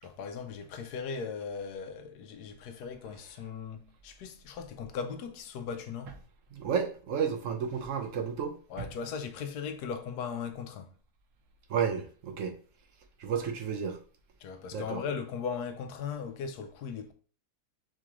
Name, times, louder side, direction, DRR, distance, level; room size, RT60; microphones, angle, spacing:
voice 1, 0.0-6.2 8.7-10.9 14.4-17.1, left 6 dB, 85° left, 1.2 m, -38 dB
voice 2, 6.6-8.5 11.7-12.5 13.2-14.0 14.7-15.0, right 7 dB, 60° right, 1.0 m, -31 dB
4.8 x 3.6 x 3.0 m
omnidirectional pair, 1.6 m